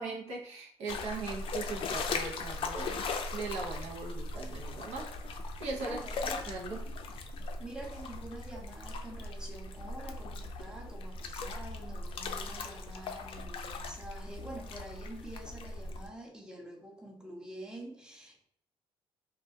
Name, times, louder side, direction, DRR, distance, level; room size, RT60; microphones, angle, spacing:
voice 1, 0.0-3.0 3.3-6.0 6.5-6.8, right 3 dB, 75° right, -3 dB, 0.7 m, -39 dB
sound 1, 0.9-16.1, left 3 dB, 55° left, 0.4 m, -39 dB
voice 2, 5.8-6.5 7.6-18.4, right 1 dB, 5° right, 0 dB, 0.6 m, -47 dB
2.3 x 2.2 x 2.6 m, 0.67 s
supercardioid pair, 80°, 11 cm